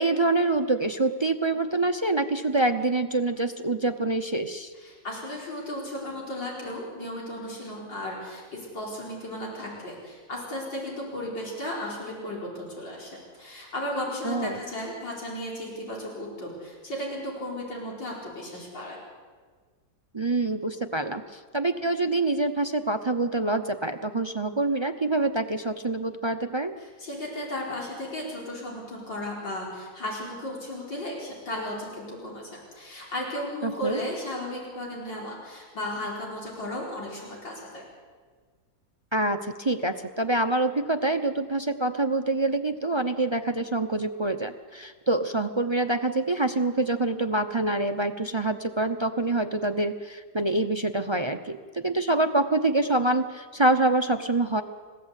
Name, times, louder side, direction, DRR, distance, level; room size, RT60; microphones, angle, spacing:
voice 1, 0.0-4.7 14.2-14.6 20.1-26.7 33.6-34.0 39.1-54.6, right 2 dB, 35° right, 8 dB, 0.4 m, -26 dB
voice 2, 4.8-19.0 26.8-37.9, left 1 dB, 90° left, -3 dB, 5.2 m, -35 dB
29.5 x 16.0 x 8.3 m, 1.5 s
omnidirectional pair, 1.9 m